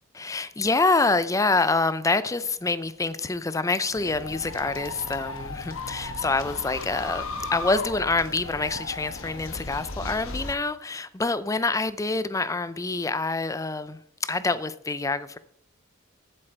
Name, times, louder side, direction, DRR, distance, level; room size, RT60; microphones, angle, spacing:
voice 1, 0.1-7.3 7.5-15.4, left 3 dB, 15° left, 14 dB, 0.5 m, -26 dB
sound 1, 3.9-10.6, left 3 dB, 80° left, 1.1 m, -36 dB
14.5 x 7.6 x 4.5 m, 0.71 s
head